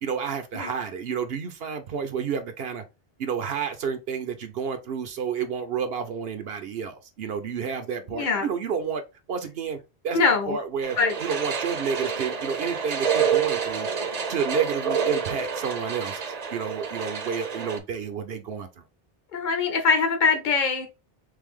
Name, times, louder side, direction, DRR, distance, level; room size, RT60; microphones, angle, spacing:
voice 1, 0.0-2.8 3.2-9.0 9.3-9.8 10.0-10.2 10.5-13.9 14.3-16.2 16.5-18.8, right 6 dB, 75° right, 0.9 m, -30 dB
voice 2, 8.1-8.5 10.1-10.6 11.0-11.1 19.3-20.9, left 4 dB, 55° left, 0.9 m, -22 dB
sound 1, 10.8-17.8, right 6 dB, 45° right, 0.7 m, -28 dB
3.4 x 3.3 x 3.6 m
omnidirectional pair, 1.0 m